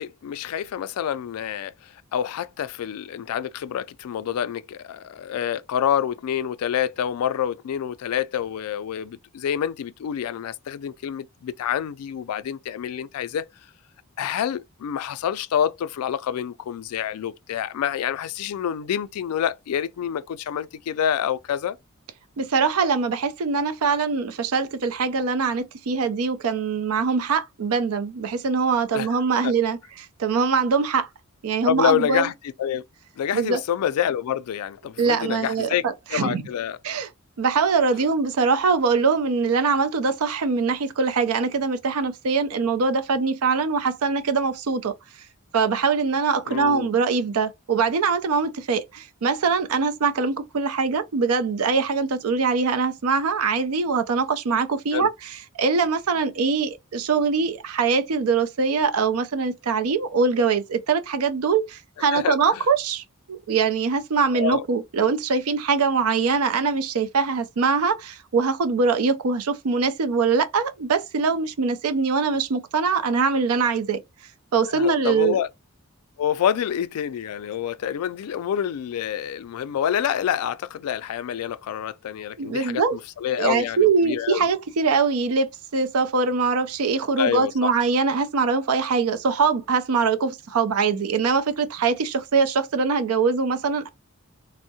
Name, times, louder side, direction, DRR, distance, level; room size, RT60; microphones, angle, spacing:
voice 1, 0.0-13.5 14.2-21.8 28.9-29.1 29.4-29.5 31.6-32.3 32.6-32.8 33.2-36.8 46.5-46.9 54.9-55.1 62.1-62.6 64.3-64.6 74.7-75.5 76.2-84.5 87.2-87.7, left 9 dB, 85° left, 0.3 m, -27 dB
voice 2, 22.4-29.8 30.2-31.1 31.4-32.3 33.3-33.6 35.0-35.7 36.1-36.4 36.8-37.1 37.4-44.9 45.5-55.1 55.6-74.0 74.5-75.4 82.4-83.0 83.4-93.9, right 5 dB, 80° right, 0.5 m, -23 dB
3.5 x 2.0 x 2.7 m
head